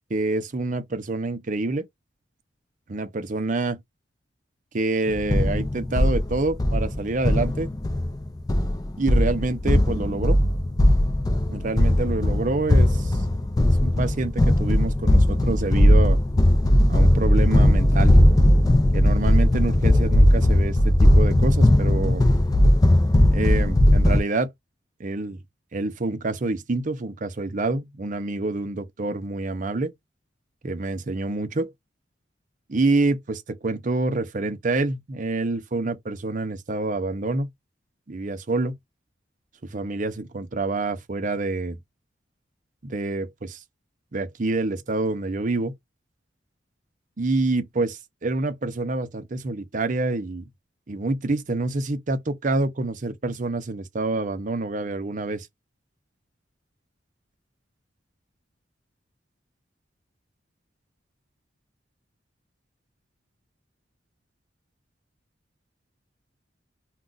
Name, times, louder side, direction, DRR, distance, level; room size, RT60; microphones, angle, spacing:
voice 1, 0.1-1.9 2.9-3.8 4.7-7.7 9.0-10.4 11.5-13.2 13.8-16.2 16.9-18.1 18.9-22.2 23.3-24.5 25.0-25.4 25.7-29.9 30.6-31.7 32.7-37.5 38.1-38.7 39.6-41.8 42.8-43.6 44.1-45.7 47.2-50.4 50.9-55.5, right 2 dB, 45° right, 0.6 m, -27 dB
sound 1, 5.1-24.2, left 1 dB, 20° left, 0.4 m, -18 dB
2.5 x 2.2 x 3.8 m
head